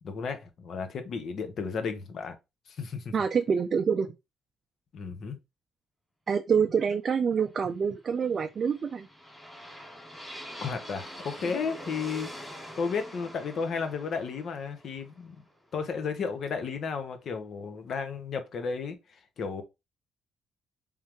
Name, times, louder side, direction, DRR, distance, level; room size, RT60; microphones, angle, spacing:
voice 1, 0.0-2.4 2.7-3.1 4.9-5.4 10.6-15.4 15.7-19.6, left 5 dB, 60° left, 0.9 m, -33 dB
voice 2, 3.1-4.1 6.3-9.1, right 6 dB, 45° right, 0.4 m, -26 dB
sound 1, 8.5-16.5, equal, 5° left, 2.2 m, -45 dB
3.6 x 3.3 x 3.0 m
cardioid pair, 90°, 0 cm